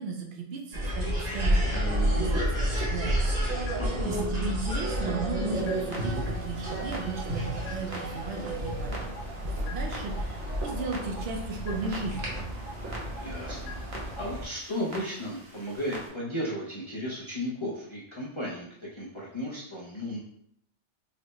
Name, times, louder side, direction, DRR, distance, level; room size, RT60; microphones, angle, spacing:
voice 1, 0.0-8.9 9.4-12.4, right 4 dB, 65° right, 1 dB, 0.8 m, -36 dB
sound 1, 0.7-14.5, equal, 50° right, 1.1 m, -30 dB
sound 2, 3.7-3.8 4.2-4.3 4.7-4.8 5.2-5.3 5.7-5.8 6.2-6.3 6.7-6.8 7.2-7.3 7.7-7.8 8.2-8.3 8.7-8.8 9.2-9.3 9.7-9.8 10.2-10.3 10.7-10.8 11.2-11.3 11.7-11.8 12.2-12.3 12.7-12.8 13.2-13.3 13.7-13.8 14.2-14.3, left 2 dB, 70° left, 1.0 m, -42 dB
voice 2, 3.8-4.2 13.2-13.8 14.2-20.2, equal, 45° left, -5 dB, 0.4 m, -35 dB
Clock, 5.5-16.1, right 1 dB, 35° right, 0.7 m, -45 dB
4.0 x 2.0 x 3.1 m, 0.70 s
omnidirectional pair, 1.2 m